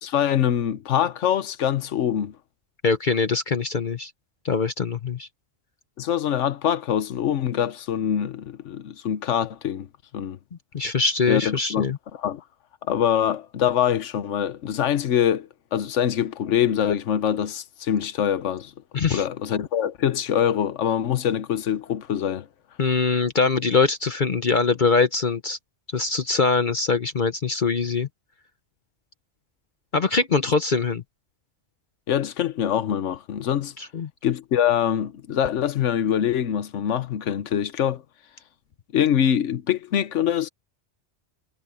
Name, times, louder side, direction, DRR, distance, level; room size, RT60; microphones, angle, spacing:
voice 1, 0.0-2.4 6.0-9.9 10.1-10.4 11.3-11.8 12.1-12.4 12.9-18.7 19.1-22.5 32.1-33.7 34.2-38.0 38.9-40.5, left 9 dB, 85° left, 1.2 m, -24 dB
voice 2, 2.8-4.1 4.4-5.3 10.7-12.0 18.9-19.2 22.8-25.6 25.9-28.1 29.9-31.0 33.8-34.1, left 4 dB, 45° left, 1.0 m, -23 dB
omnidirectional pair, 1.2 m